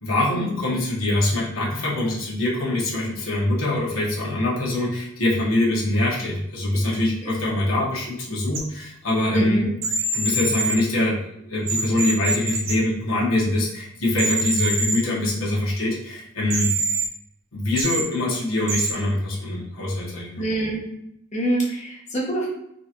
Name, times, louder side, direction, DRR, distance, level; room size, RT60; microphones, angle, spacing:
voice 1, 0.0-9.7 10.1-11.2 11.5-16.7 17.5-20.4, left 1 dB, 85° left, -4 dB, 1.1 m, -24 dB
sound 1, 8.5-8.6 9.8-10.8 11.7-12.7 14.1-15.0 16.5-17.1 17.8-18.0 18.7-18.9, right 3 dB, 70° right, 0.7 m, -24 dB
voice 2, 9.3-9.7 20.4-20.8 21.3-22.5, right 1 dB, 35° left, -4 dB, 1.0 m, -25 dB
3.9 x 2.5 x 2.9 m, 0.76 s
head